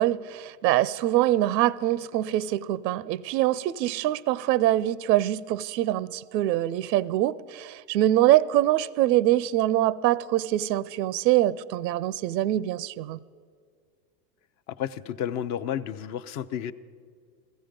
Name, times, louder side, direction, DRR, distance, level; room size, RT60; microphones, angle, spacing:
voice 1, 0.0-13.2, right 14 dB, 85° right, 0.6 m, -24 dB
voice 2, 14.8-16.7, left 9 dB, 35° left, 0.5 m, -31 dB
15.5 x 14.5 x 5.1 m
hypercardioid pair, 110°, 48 cm